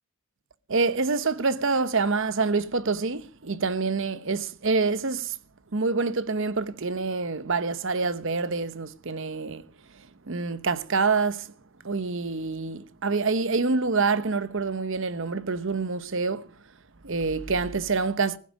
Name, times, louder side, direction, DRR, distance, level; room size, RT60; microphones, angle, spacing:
voice 1, 0.7-5.3 5.7-9.6 10.3-11.5 11.8-16.4 17.0-18.4, right 4 dB, 55° right, 0.9 m, -26 dB
15.5 x 11.5 x 5.1 m
head